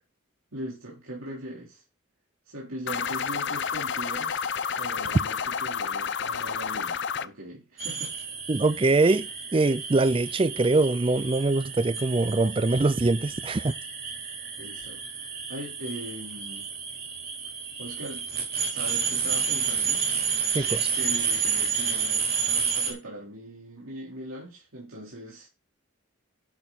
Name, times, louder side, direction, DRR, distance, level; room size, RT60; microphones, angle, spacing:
voice 1, 0.5-1.8 2.5-4.5 4.8-8.1 14.6-16.7 17.8-18.3 18.7-20.1 20.9-25.5, right 1 dB, 90° right, 3.7 m, -40 dB
sound 1, 2.9-7.3, left 6 dB, 55° left, 0.6 m, -30 dB
sound 2, 7.8-22.9, right 6 dB, 45° right, 3.5 m, -30 dB
voice 2, 8.5-13.7 20.5-20.9, right 2 dB, 25° right, 0.4 m, -23 dB
11.0 x 6.6 x 4.0 m
head